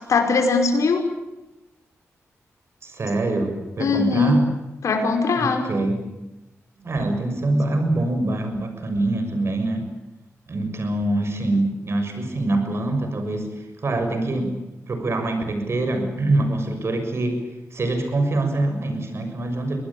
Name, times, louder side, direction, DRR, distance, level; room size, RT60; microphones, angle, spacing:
voice 1, 0.1-1.1 3.8-4.4 4.8-5.7, left 4 dB, 80° left, 5 dB, 5.2 m, -20 dB
voice 2, 2.8-4.5 5.4-6.0 6.8-9.9 10.5-14.6 14.9-17.4 17.7-19.8, right 2 dB, 55° right, 6 dB, 6.7 m, -24 dB
26.0 x 19.5 x 8.8 m, 0.97 s
cardioid pair, 80°, 5 cm